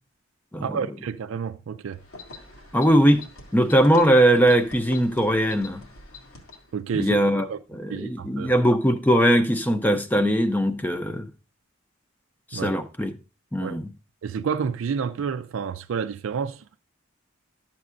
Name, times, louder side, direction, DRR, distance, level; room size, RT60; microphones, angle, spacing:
voice 1, 0.6-2.0 6.7-7.6 7.9-8.5 12.5-12.7 13.6-13.8 14.2-16.7, right 6 dB, 80° right, 0.4 m, -30 dB
sound 1, 1.9-6.8, left 3 dB, 90° left, 2.1 m, -44 dB
voice 2, 2.7-3.2 3.5-5.8 6.9-7.5 7.7-11.3 12.5-13.1 13.5-13.9, right 1 dB, 10° left, 0.5 m, -20 dB
12.0 x 7.4 x 2.5 m
head